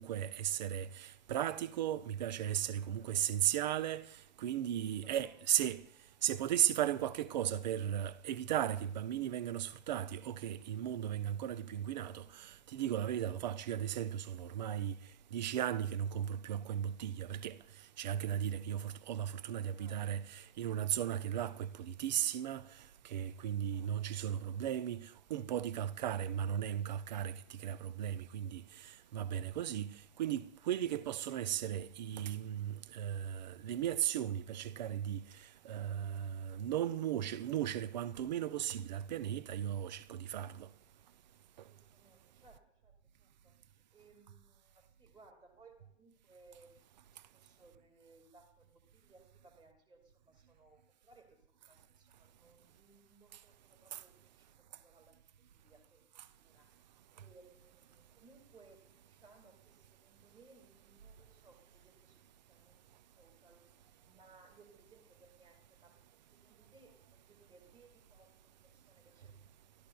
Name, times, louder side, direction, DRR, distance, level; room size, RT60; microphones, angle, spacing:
voice 1, 0.0-5.8 6.2-15.0 15.3-17.6 18.0-22.7 23.0-29.9 30.2-40.7 53.9-54.0, right 10 dB, 35° right, 0.6 m, -36 dB
voice 2, 2.8-3.3 4.9-5.3 19.7-20.1 23.7-24.3 41.6-43.6 43.9-56.7 57.1-62.2 62.5-62.8 63.2-63.7 64.0-66.0 66.3-68.3 68.6-69.5, right 3 dB, 10° right, 2.1 m, -64 dB
29.5 x 13.5 x 2.3 m
figure-of-eight pair, 120°, 38 cm